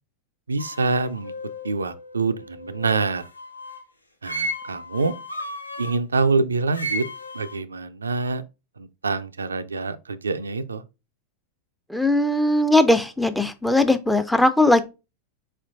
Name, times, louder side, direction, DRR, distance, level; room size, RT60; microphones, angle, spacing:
voice 1, 0.5-1.3 1.6-3.3 4.2-5.2 5.8-7.1 7.3-8.4 8.8-10.8, right 3 dB, 75° right, 0.3 m, -25 dB
Japan Asian Flute Friend-Improv Small Room, 0.6-3.9 4.2-6.0 6.7-7.6, equal, 85° left, 0.6 m, -34 dB
voice 2, 11.9-14.8, left 1 dB, 5° left, 0.4 m, -19 dB
4.3 x 4.3 x 2.4 m
figure-of-eight pair, 90°, 0 cm